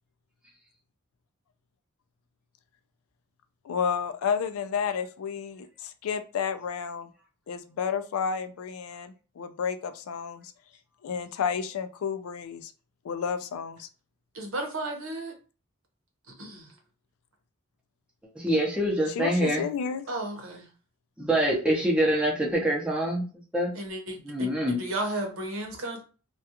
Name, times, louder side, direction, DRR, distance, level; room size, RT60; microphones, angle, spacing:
voice 1, 3.6-7.1 7.5-10.5 11.0-12.7 13.0-13.9 19.1-20.0, left 6 dB, 80° left, 0.4 m, -31 dB
voice 2, 14.3-15.3 16.4-16.7 20.1-20.7 23.7-26.0, right 1 dB, 70° right, 0.8 m, -34 dB
voice 3, 18.4-19.6 21.2-23.2 23.5-23.7 24.2-24.8, right 1 dB, 5° right, 0.6 m, -25 dB
2.4 x 2.3 x 2.8 m
head